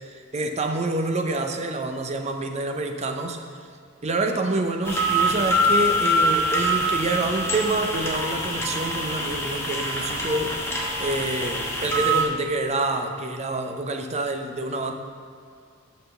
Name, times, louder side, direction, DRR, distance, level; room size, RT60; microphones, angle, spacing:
voice 1, 0.1-3.4 4.0-14.9, right 2 dB, 30° right, 5 dB, 0.6 m, -27 dB
sound 1, 4.8-12.2, equal, 10° left, 1.0 m, -24 dB
5.8 x 5.6 x 6.9 m, 2.2 s
head